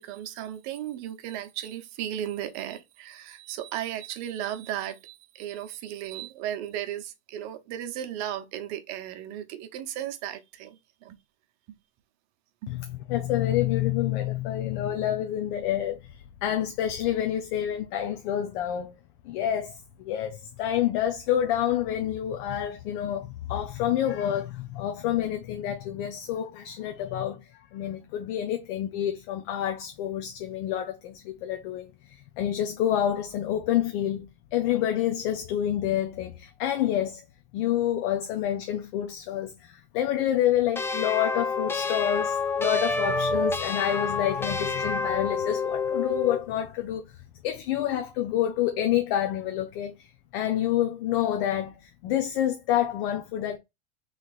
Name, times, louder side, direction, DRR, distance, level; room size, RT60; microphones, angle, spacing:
voice 1, 0.0-11.2 12.6-12.7, right 11 dB, 55° right, 0.9 m, -35 dB
voice 2, 12.7-19.0 19.2-37.2 37.5-47.0 47.4-50.1 50.3-53.6, left 11 dB, 60° left, 0.8 m, -28 dB
sound 1, 40.8-46.5, left 4 dB, 5° left, 0.4 m, -28 dB
3.4 x 3.3 x 4.1 m
hypercardioid pair, 105°, 33 cm